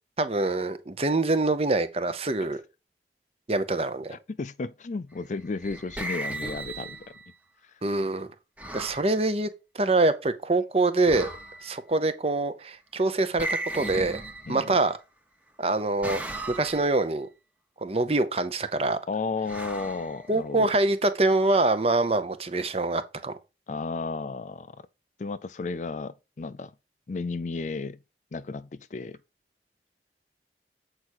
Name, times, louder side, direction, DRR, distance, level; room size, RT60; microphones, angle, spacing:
voice 1, 0.2-2.6 3.5-4.2 7.8-8.3 8.7-9.5 9.7-11.3 11.6-14.2 14.5-15.0 15.6-16.2 16.5-17.3 17.8-19.0 20.3-23.3, right 2 dB, 35° right, 0.8 m, -25 dB
voice 2, 4.1-7.0 7.6-7.7 14.5-14.8 19.1-20.7 23.7-24.8 25.2-26.7 27.1-28.0 28.3-29.2, left 4 dB, 45° left, 0.4 m, -33 dB
sound 1, 5.3-7.3 8.6-9.1 11.0-11.8 13.4-14.9 16.0-17.0 19.5-20.7, right 1 dB, 10° right, 1.0 m, -36 dB
7.9 x 4.8 x 4.4 m
head